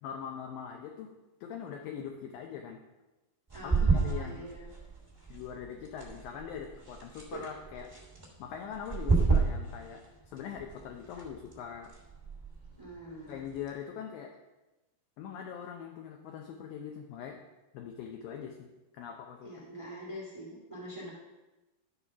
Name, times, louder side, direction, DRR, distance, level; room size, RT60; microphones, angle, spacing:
voice 1, 0.0-1.1 1.4-2.8 3.6-4.4 5.3-7.9 8.4-11.9 13.3-14.3 15.2-17.4 17.7-18.7 18.9-19.6, left 8 dB, 75° left, 2 dB, 2.2 m, -42 dB
sound 1, 3.5-13.8, right 4 dB, 15° right, 1.1 m, -33 dB
voice 2, 3.5-4.6 12.8-13.4 19.4-21.1, equal, 60° right, -4 dB, 0.3 m, -44 dB
12.0 x 4.3 x 5.9 m, 1.1 s
omnidirectional pair, 4.6 m